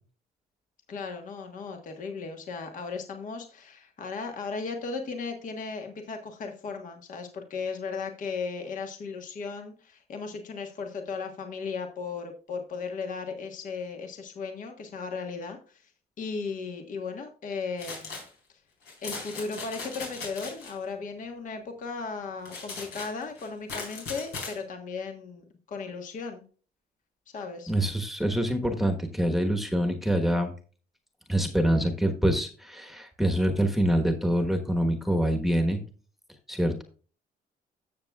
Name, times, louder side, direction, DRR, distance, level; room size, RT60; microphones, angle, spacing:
voice 1, 0.9-15.9 16.2-18.2 18.5-18.6 19.0-26.4 27.3-27.7, left 4 dB, 50° left, 4 dB, 1.3 m, -36 dB
sound 1, 17.8-18.3 18.9-20.7 22.5-24.6, left 4 dB, 80° left, 4.1 m, -39 dB
voice 2, 27.7-30.5 31.3-35.8 36.5-36.8, right 1 dB, ahead, 5 dB, 1.2 m, -25 dB
13.0 x 7.2 x 2.3 m, 0.39 s
cardioid pair, 110°, 17 cm